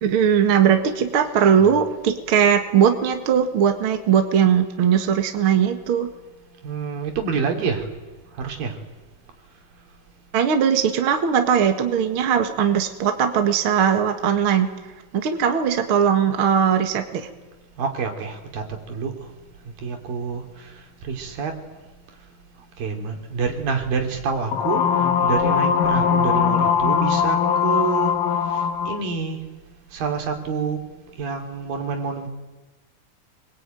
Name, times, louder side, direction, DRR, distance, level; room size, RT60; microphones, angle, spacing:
voice 1, 0.0-6.1 10.3-14.7 15.1-17.3, right 8 dB, 45° right, 6 dB, 2.1 m, -19 dB
voice 2, 6.6-7.9 8.4-8.7 17.8-19.1 19.8-20.4 21.0-21.5 22.8-24.8 25.2-28.2 28.9-29.4 29.9-30.8 31.2-32.3, right 5 dB, 75° right, 4 dB, 4.7 m, -27 dB
sound 1, 24.5-29.0, left 7 dB, 70° left, 2.8 m, -20 dB
26.0 x 23.0 x 9.2 m, 1.1 s
omnidirectional pair, 4.1 m